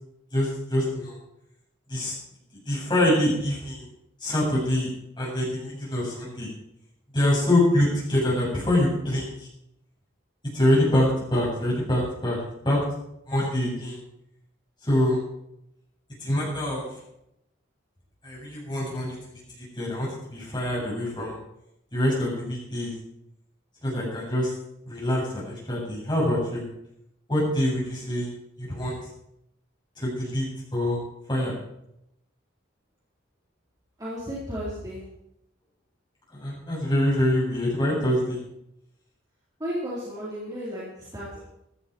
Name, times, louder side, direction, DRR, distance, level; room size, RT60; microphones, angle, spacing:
voice 1, 0.3-1.1 1.9-2.1 2.7-3.9 4.2-4.9 5.2-6.5 7.1-9.5 10.5-12.4 12.6-12.8 13.3-14.0 14.8-15.2 16.2-16.9 18.2-19.2 19.8-21.4 21.9-22.9 23.8-24.5 24.9-26.6 27.3-28.3 28.6-29.0 30.0-30.4 30.7-31.0 31.3-31.6 36.3-38.4, left 1 dB, 20° left, -5 dB, 7.5 m, -25 dB
voice 2, 34.0-35.0 39.6-41.4, equal, 20° right, -9 dB, 4.2 m, -33 dB
15.5 x 12.5 x 4.7 m, 0.81 s
head